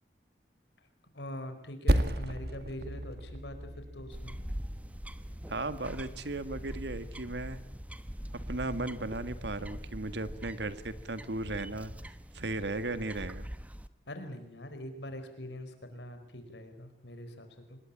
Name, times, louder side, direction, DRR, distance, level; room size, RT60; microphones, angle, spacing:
voice 1, 1.1-4.4 14.1-17.8, left 1 dB, 85° left, 8 dB, 4.8 m, -43 dB
Percussion, 1.9-6.7, equal, 60° right, 2.0 m, -34 dB
sound 1, 4.1-13.9, equal, 10° right, 0.9 m, -43 dB
voice 2, 5.5-7.6 8.5-13.5, right 2 dB, 80° right, 12 dB, 1.7 m, -36 dB
25.5 x 21.0 x 8.7 m, 0.73 s
head